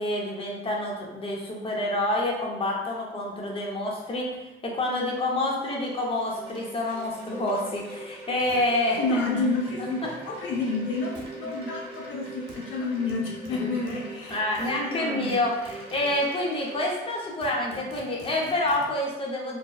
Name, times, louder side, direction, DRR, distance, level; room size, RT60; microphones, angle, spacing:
voice 1, 0.0-9.4 11.6-11.7 13.5-13.7 14.3-19.6, left 1 dB, 25° left, -2 dB, 0.7 m, -28 dB
Wind chime, 5.6-17.7, equal, 25° right, 0.8 m, -42 dB
sound 1, 7.2-7.3 7.7-7.8 8.5-8.6 11.2-11.4 12.5-12.6 13.1-14.8 15.3-16.2 16.9-17.0 17.2-18.9, right 1 dB, 60° right, 0.7 m, -47 dB
voice 2, 9.0-14.4 14.9-15.4, left 3 dB, 80° left, -1 dB, 0.5 m, -29 dB
2.7 x 2.2 x 2.3 m, 0.97 s
cardioid pair, 90°, 20 cm